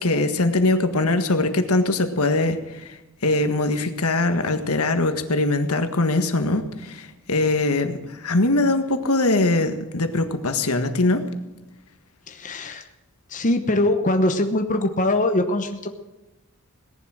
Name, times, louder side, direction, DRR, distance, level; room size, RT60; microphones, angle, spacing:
voice 1, 0.0-11.3, left 2 dB, 75° left, 8 dB, 1.6 m, -22 dB
voice 2, 12.3-12.9 13.3-15.9, left 1 dB, 35° left, 6 dB, 1.0 m, -22 dB
18.0 x 11.0 x 6.3 m, 1.0 s
head